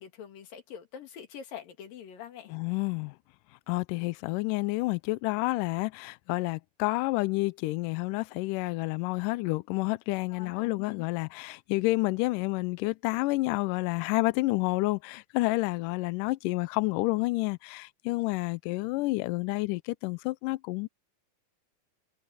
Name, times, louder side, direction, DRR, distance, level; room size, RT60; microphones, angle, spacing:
voice 1, 0.0-2.5 10.3-11.1, left 9 dB, 65° left, 3.9 m, -45 dB
voice 2, 2.5-3.2 3.7-20.9, left 22 dB, 90° left, 1.8 m, -29 dB
omnidirectional pair, 4.4 m